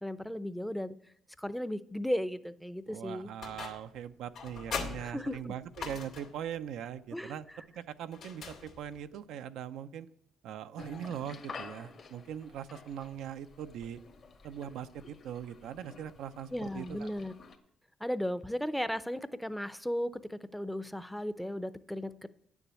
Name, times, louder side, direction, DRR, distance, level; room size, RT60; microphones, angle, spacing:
voice 1, 0.0-0.9 1.4-3.3 5.0-5.5 7.1-7.4 16.5-17.3 18.0-22.3, equal, 5° left, 14 dB, 0.6 m, -35 dB
voice 2, 2.9-7.5 7.7-10.1 10.4-14.0 14.4-17.1, right 9 dB, 80° right, 10 dB, 0.5 m, -41 dB
sound 1, 3.4-4.0 4.3-6.4 8.1-9.1, left 5 dB, 70° left, 2.2 m, -41 dB
sound 2, 10.8-17.6, left 4 dB, 55° left, 1.6 m, -50 dB
9.2 x 7.2 x 8.2 m, 0.71 s
supercardioid pair, 70°, 0 cm